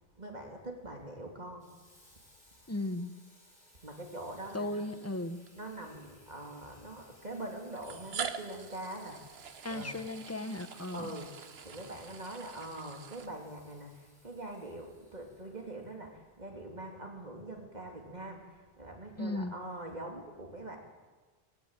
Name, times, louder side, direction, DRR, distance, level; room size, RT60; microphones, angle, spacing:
voice 1, 0.1-1.7 3.8-4.8 5.5-9.4 9.6-10.0 10.9-20.8, right 1 dB, 40° right, 2 dB, 3.1 m, -43 dB
Water tap faucet / Sink (filling or washing), 1.6-16.4, left 1 dB, 80° left, 8.6 m, -62 dB
voice 2, 2.7-3.1 4.5-5.4 9.6-11.2 19.2-19.5, left 2 dB, 15° left, 9 dB, 1.0 m, -36 dB
sound 1, 4.3-4.4 5.5-5.6 6.7-6.8 7.8-13.7, right 7 dB, 75° right, 1.2 m, -44 dB
18.0 x 16.5 x 9.0 m, 1.3 s
omnidirectional pair, 1.1 m